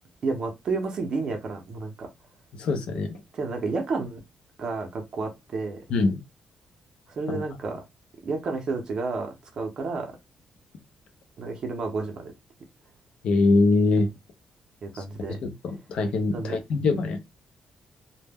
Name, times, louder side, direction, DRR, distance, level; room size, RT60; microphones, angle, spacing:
voice 1, 0.2-2.1 3.3-4.2 4.6-5.8 7.2-7.8 8.2-10.1 11.4-12.3 14.8-15.4 16.3-16.6, right 3 dB, 40° right, 0.6 m, -31 dB
voice 2, 2.6-3.2 5.9-6.2 7.3-7.4 13.2-14.1 14.9-17.3, left 3 dB, 60° left, 0.5 m, -24 dB
2.1 x 2.0 x 3.3 m
cardioid pair, 175°, 2 cm